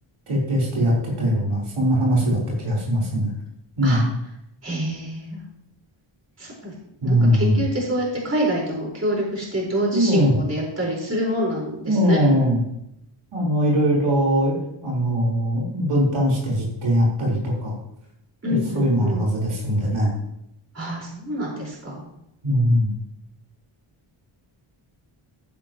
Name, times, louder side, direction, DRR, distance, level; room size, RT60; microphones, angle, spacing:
voice 1, 0.3-3.3 3.8-4.1 7.0-7.6 9.9-10.3 11.9-12.6 13.3-17.7 18.4-20.1 22.4-22.9, equal, 80° right, -5 dB, 4.2 m, -21 dB
voice 2, 4.6-5.4 6.4-6.7 7.0-12.2 18.4-19.2 20.7-22.0, equal, 30° right, -4 dB, 4.9 m, -26 dB
15.0 x 10.5 x 3.1 m, 0.81 s
wide cardioid pair, 125°, 50 cm